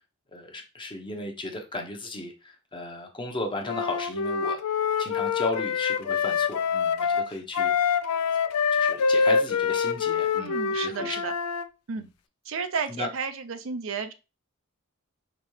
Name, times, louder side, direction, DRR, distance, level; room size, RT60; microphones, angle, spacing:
voice 1, 0.3-4.6 5.0-7.7 8.7-11.2 12.0-12.1 12.9-13.1, left 2 dB, 20° left, 2 dB, 0.9 m, -35 dB
Wind instrument woodwind instrument, 3.7-11.7, left 6 dB, 85° left, 0.4 m, -25 dB
voice 2, 10.3-11.3 11.9-12.0 12.5-14.1, right 5 dB, 65° right, 8 dB, 0.5 m, -32 dB
5.0 x 3.3 x 3.2 m, 0.29 s
head